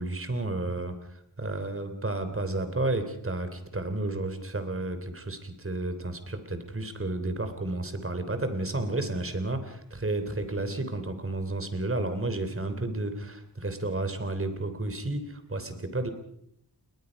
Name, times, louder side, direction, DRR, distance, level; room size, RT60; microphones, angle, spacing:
voice 1, 0.0-16.1, right 2 dB, 30° right, 9 dB, 3.3 m, -32 dB
30.0 x 21.0 x 5.3 m, 0.72 s
wide cardioid pair, 100°, 42 cm